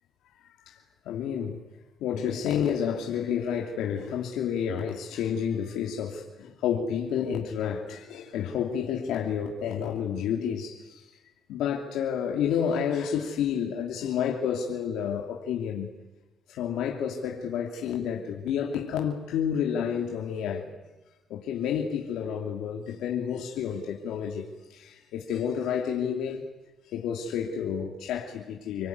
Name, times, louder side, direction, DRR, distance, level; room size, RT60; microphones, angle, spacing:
voice 1, 1.0-1.6 2.0-11.1 11.5-15.9 16.5-20.7 21.3-26.5 26.9-28.9, left 8 dB, 85° left, 2.9 m, -30 dB
29.5 x 21.0 x 9.7 m
cardioid pair, 90°, 0 cm